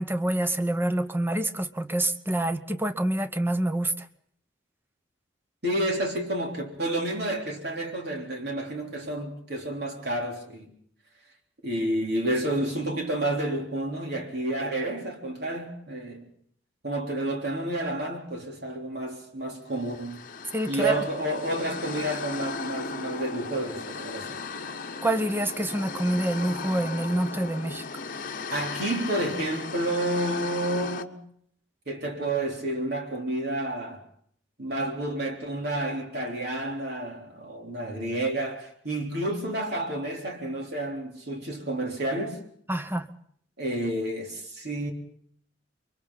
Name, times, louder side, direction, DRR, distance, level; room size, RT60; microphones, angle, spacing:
voice 1, 0.0-4.1 20.5-21.0 25.0-28.0 42.7-43.1, right 1 dB, 10° right, 0.9 m, -27 dB
voice 2, 5.6-10.7 11.6-16.3 16.8-20.2 20.7-24.3 28.5-31.2 31.9-34.0 34.6-42.4 43.6-44.9, right 1 dB, 60° right, 3.7 m, -30 dB
sound 1, 19.8-31.0, left 4 dB, 50° left, 1.0 m, -36 dB
29.0 x 23.5 x 4.1 m
head